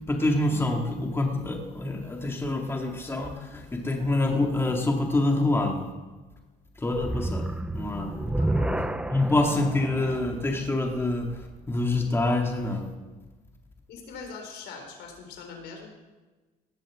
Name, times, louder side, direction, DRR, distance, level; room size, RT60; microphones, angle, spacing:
voice 1, 0.1-5.9 6.8-7.5 7.7-8.2 9.1-11.3 11.7-12.9, left 2 dB, 15° left, 2 dB, 2.1 m, -26 dB
sound 1, 6.9-12.2, right 1 dB, 5° right, 0.7 m, -31 dB
voice 2, 8.4-8.9 13.9-15.9, left 5 dB, 75° left, 3 dB, 4.1 m, -42 dB
18.5 x 7.6 x 7.3 m, 1.2 s
cardioid pair, 110°, 17 cm